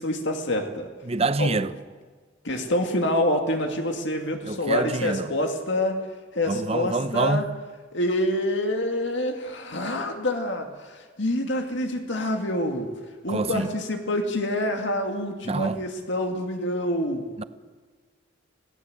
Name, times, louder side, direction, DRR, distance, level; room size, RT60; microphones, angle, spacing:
voice 1, 0.0-0.9 1.4-1.5 2.4-6.0 6.3-7.4 7.9-12.9 13.2-17.3, left 1 dB, 65° left, 2.3 m, -26 dB
voice 2, 1.0-1.7 4.4-5.3 6.4-7.6 13.3-13.7 15.4-15.8 17.4-17.5, right 3 dB, 30° right, 0.7 m, -26 dB
27.5 x 17.5 x 7.9 m
head